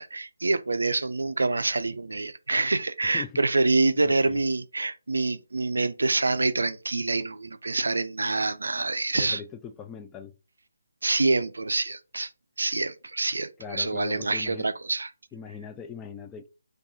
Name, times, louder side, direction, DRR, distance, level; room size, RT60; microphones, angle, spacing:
voice 1, 0.0-9.4 11.0-12.3 12.6-15.1, right 3 dB, 75° right, 0.3 m, -26 dB
voice 2, 4.0-4.4 9.1-10.3 13.6-14.7 15.3-16.5, left 6 dB, 15° left, 0.3 m, -40 dB
4.6 x 2.3 x 2.7 m
figure-of-eight pair, 150°, 0 cm